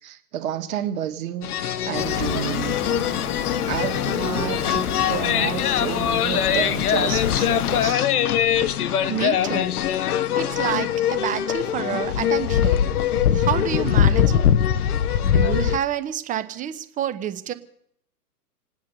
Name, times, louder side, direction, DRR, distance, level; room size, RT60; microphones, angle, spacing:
voice 1, 0.0-2.8 3.7-8.1, right 11 dB, 55° right, 6 dB, 2.0 m, -30 dB
sound 1, 1.4-15.8, left 9 dB, 70° left, 0.9 m, -22 dB
sound 2, 1.9-7.9, left 6 dB, 25° left, 1.1 m, -29 dB
voice 2, 9.0-9.7 10.3-12.8 13.3-14.4 15.2-17.5, right 10 dB, 15° right, 11 dB, 0.8 m, -28 dB
27.5 x 9.4 x 5.4 m, 0.69 s
hypercardioid pair, 115°, 48 cm